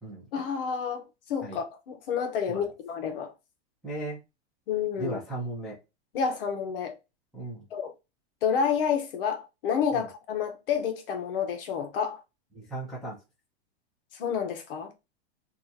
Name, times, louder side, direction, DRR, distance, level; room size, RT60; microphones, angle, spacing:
voice 1, 0.3-3.3 4.7-5.2 6.1-7.0 7.7-7.9 8.4-12.2 14.1-14.9, left 7 dB, 55° left, 0.8 m, -29 dB
voice 2, 3.8-4.2 5.0-5.8 7.3-7.7 9.9-10.1 12.5-13.2, right 2 dB, ahead, 0.6 m, -36 dB
2.9 x 2.4 x 3.9 m
supercardioid pair, 175°, 32 cm